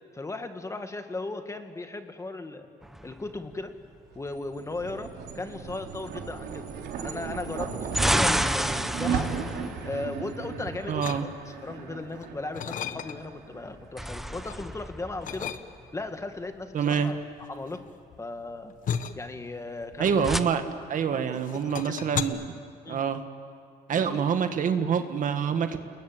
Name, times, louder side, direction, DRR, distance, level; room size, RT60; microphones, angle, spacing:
voice 1, 0.1-2.7 3.0-3.7 4.2-6.6 6.9-9.3 9.8-11.3 11.6-15.5 15.9-17.2 17.5-17.8 18.2-18.7 19.2-20.4 21.1-22.0 22.8-23.0 23.9-24.2, left 2 dB, 15° left, 7 dB, 2.0 m, -37 dB
sound 1, 2.8-3.9 7.5-10.8 13.6-16.1 19.8-20.4, equal, ahead, 0.9 m, -30 dB
sound 2, 4.1-14.6, right 6 dB, 75° right, 3.9 m, -36 dB
voice 2, 10.9-11.3 16.7-17.1 20.0-20.6 20.9-22.5 22.9-23.2 23.9-25.8, right 7 dB, 50° right, 8 dB, 1.8 m, -26 dB
sound 3, 11.0-11.7 12.1-13.4 13.9-14.6 15.2-16.1 16.9-21.0 21.3-22.2, left 8 dB, 50° left, 1.4 m, -35 dB
29.5 x 21.0 x 9.6 m, 2.2 s
cardioid pair, 110°, 17 cm